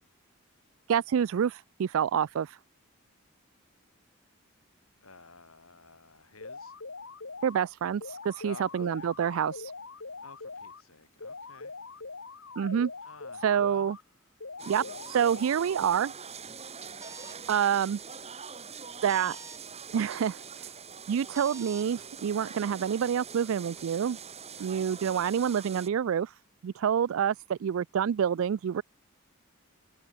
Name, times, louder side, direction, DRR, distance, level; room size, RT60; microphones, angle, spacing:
voice 1, 0.9-2.6 7.4-9.7 12.6-12.9 13.4-14.0 14.7-16.1 17.5-18.0 19.0-19.4 19.9-20.7 21.1-24.2 24.6-26.3 26.6-28.8, right 8 dB, 75° right, 0.3 m, -27 dB
voice 2, 5.0-6.7 8.4-9.1 10.2-11.7 13.0-14.0 24.5-24.9, left 3 dB, 90° left, 7.3 m, -52 dB
sound 1, 6.4-7.6 8.0-10.8 11.2-14.0 14.4-16.0, left 4 dB, 70° left, 1.8 m, -43 dB
sound 2, 14.6-25.9, right 6 dB, 30° right, 6.0 m, -44 dB
sound 3, 17.0-17.4 19.1-19.6 21.3-21.9, right 4 dB, 15° right, 5.2 m, -46 dB
head